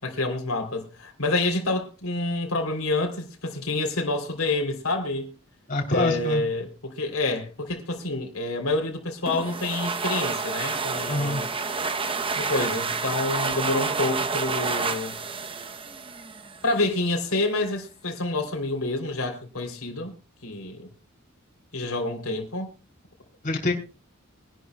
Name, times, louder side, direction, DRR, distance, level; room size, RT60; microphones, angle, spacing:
voice 1, 0.0-5.3 5.9-11.5 12.3-15.2 16.6-20.1 20.4-20.9 21.7-22.7, left 2 dB, 85° left, 3.2 m, -28 dB
voice 2, 5.7-6.4 11.1-11.4 23.4-23.7, left 2 dB, 40° left, 3.1 m, -25 dB
sound 1, 9.3-16.7, right 4 dB, 25° right, 0.8 m, -29 dB
24.0 x 11.5 x 2.3 m
head